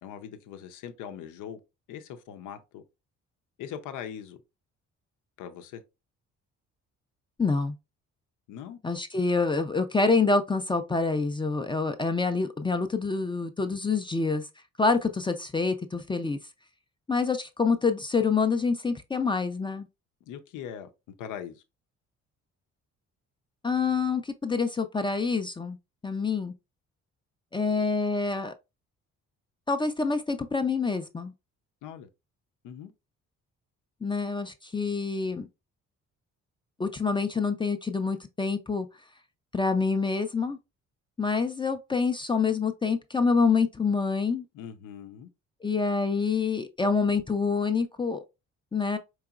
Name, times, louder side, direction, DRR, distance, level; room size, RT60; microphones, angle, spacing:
voice 1, 0.0-1.6 1.9-2.8 3.6-4.4 5.4-5.8 8.5-8.8 20.3-20.9 21.2-21.6 31.8-32.1 32.6-32.9 44.5-45.3, left 9 dB, 90° left, 0.6 m, -41 dB
voice 2, 7.4-7.7 8.8-14.5 14.8-16.4 17.1-19.9 23.6-25.8 26.0-26.5 27.5-28.5 29.7-31.3 34.0-35.5 36.8-38.9 39.5-40.6 41.2-44.4 45.6-48.2 48.7-49.0, left 4 dB, 15° left, 0.4 m, -26 dB
4.7 x 2.9 x 2.4 m
cardioid pair, 90°, 30 cm